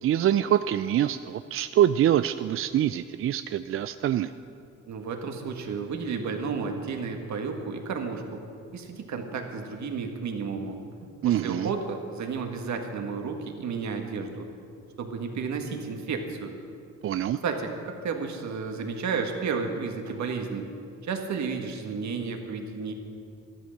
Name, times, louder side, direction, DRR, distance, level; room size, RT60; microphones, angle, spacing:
voice 1, 0.0-4.3 11.2-11.7 17.0-17.4, right 11 dB, 45° right, 12 dB, 0.4 m, -25 dB
voice 2, 4.9-8.4 8.7-10.8 11.2-14.5 15.0-16.6 17.4-20.7 21.0-22.9, right 5 dB, 65° right, 4 dB, 1.8 m, -32 dB
13.0 x 12.5 x 6.6 m, 2.4 s
cardioid pair, 90°, 30 cm